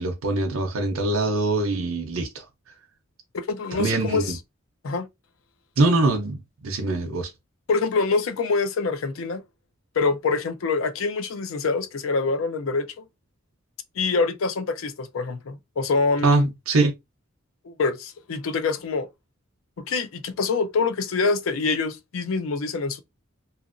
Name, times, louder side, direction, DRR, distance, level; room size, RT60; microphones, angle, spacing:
voice 1, 0.0-2.4 3.7-4.4 5.8-7.3 16.2-16.9, right 2 dB, 80° right, 0.6 m, -23 dB
voice 2, 3.3-4.2 4.8-5.1 7.7-9.4 10.0-13.0 14.0-16.5 17.6-19.1 19.9-23.0, left 4 dB, 70° left, 0.5 m, -25 dB
2.9 x 2.5 x 2.4 m
head